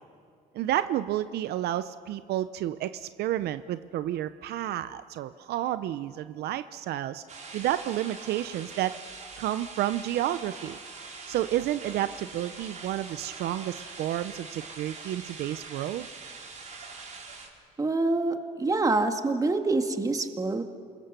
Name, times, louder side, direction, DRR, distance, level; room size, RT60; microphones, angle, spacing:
voice 1, 0.5-7.2 7.5-8.9 9.4-10.8 11.3-16.1, right 13 dB, 70° right, 13 dB, 0.7 m, -30 dB
sound 1, 7.3-17.5, right 4 dB, 45° right, 4.6 m, -43 dB
voice 2, 17.8-20.6, right 3 dB, 20° right, 6 dB, 1.9 m, -26 dB
28.0 x 22.0 x 6.9 m, 2.2 s
cardioid pair, 110°, 17 cm